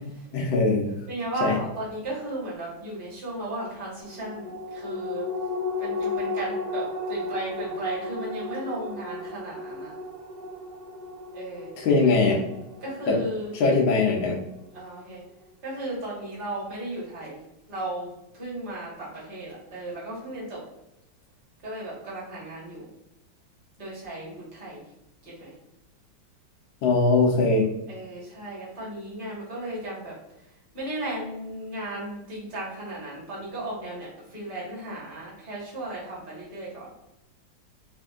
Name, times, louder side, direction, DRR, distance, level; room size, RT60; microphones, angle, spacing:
voice 1, 0.3-0.9 1.4-1.5 11.8-12.4 13.1-13.2 13.6-14.4 26.8-27.7, left 3 dB, 75° left, -1 dB, 1.4 m, -21 dB
voice 2, 1.1-5.3 5.8-9.9 11.3-11.7 12.0-12.1 12.8-13.5 14.7-15.2 15.6-17.4 17.7-20.6 21.6-22.9 23.8-24.8 25.2-25.5 27.9-30.1 30.7-36.9, right 1 dB, 30° right, -7 dB, 1.4 m, -35 dB
sound 1, 4.0-14.8 15.2-15.3, left 2 dB, 65° right, 0.9 m, -34 dB
4.2 x 2.7 x 2.4 m, 0.89 s
omnidirectional pair, 2.2 m